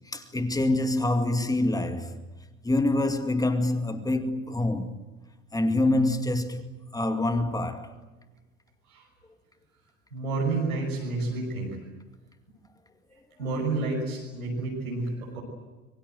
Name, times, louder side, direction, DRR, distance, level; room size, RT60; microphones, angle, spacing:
voice 1, 0.1-2.1 2.6-5.0 5.5-6.6 6.9-7.9, left 2 dB, 10° left, 2.2 m, -26 dB
voice 2, 10.1-11.8 13.4-15.4, right 3 dB, 80° right, 6.3 m, -30 dB
26.5 x 23.5 x 7.9 m
figure-of-eight pair, 65°, 43 cm